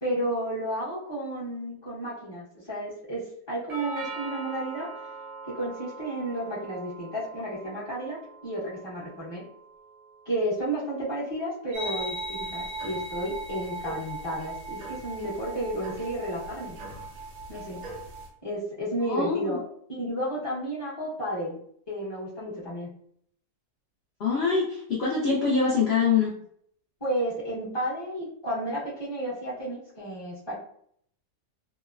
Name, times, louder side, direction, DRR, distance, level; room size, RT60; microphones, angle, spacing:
voice 1, 0.0-4.9 5.5-9.4 10.3-16.8 17.5-17.8 18.4-19.6 19.9-21.6 21.9-22.9 27.0-30.5, right 1 dB, 25° left, -9 dB, 0.5 m, -32 dB
Doorbell, 3.7-11.7, right 3 dB, 45° right, 0.5 m, -43 dB
sound 1, 11.7-18.3, right 2 dB, 85° right, 1.3 m, -37 dB
voice 2, 19.0-19.6 24.2-26.3, left 5 dB, 80° left, -5 dB, 0.5 m, -24 dB
3.0 x 2.0 x 2.3 m, 0.66 s
omnidirectional pair, 1.7 m